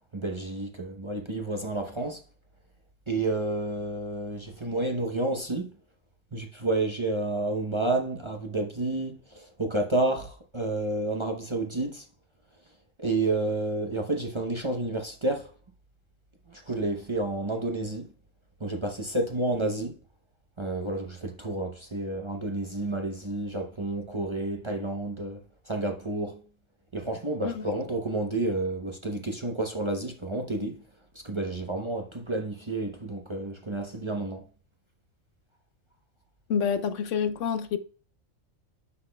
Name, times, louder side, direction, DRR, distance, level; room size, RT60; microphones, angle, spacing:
voice 1, 0.1-2.2 3.1-5.7 6.3-12.0 13.0-15.5 16.5-18.1 18.6-20.0 20.6-26.4 26.9-30.8 31.2-34.4, right 2 dB, 30° right, 0.7 m, -30 dB
voice 2, 36.5-37.8, left 7 dB, 75° left, 0.9 m, -28 dB
9.5 x 5.8 x 2.2 m
omnidirectional pair, 1.3 m